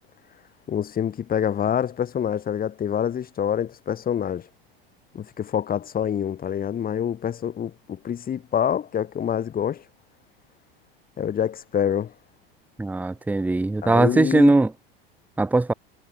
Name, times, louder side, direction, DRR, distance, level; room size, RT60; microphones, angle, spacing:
voice 1, 0.7-4.5 5.1-9.8 11.2-12.1 13.8-14.5, left 9 dB, 30° left, 3.4 m, -26 dB
voice 2, 12.8-14.7 15.4-15.7, right 2 dB, 5° right, 0.8 m, -20 dB
figure-of-eight pair, 80°, 29 cm